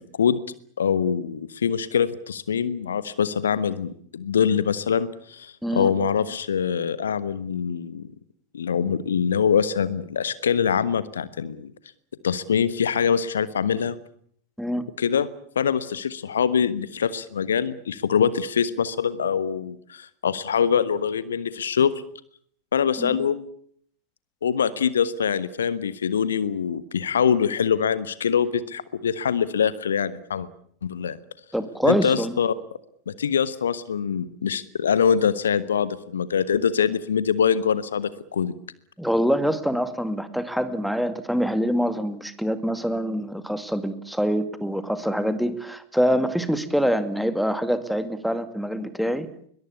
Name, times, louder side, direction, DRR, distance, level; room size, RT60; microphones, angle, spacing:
voice 1, 0.8-8.1 8.5-11.7 12.2-14.0 15.0-15.3 15.5-21.9 22.7-23.4 24.4-30.5 30.8-31.2 31.8-32.5 33.1-38.5, left 7 dB, 65° left, 17 dB, 1.3 m, -24 dB
voice 2, 5.6-5.9 14.6-14.8 23.0-23.2 31.5-32.4 39.0-49.3, equal, ahead, 11 dB, 2.2 m, -25 dB
22.0 x 21.5 x 8.3 m, 0.63 s
figure-of-eight pair, 90°, 0 cm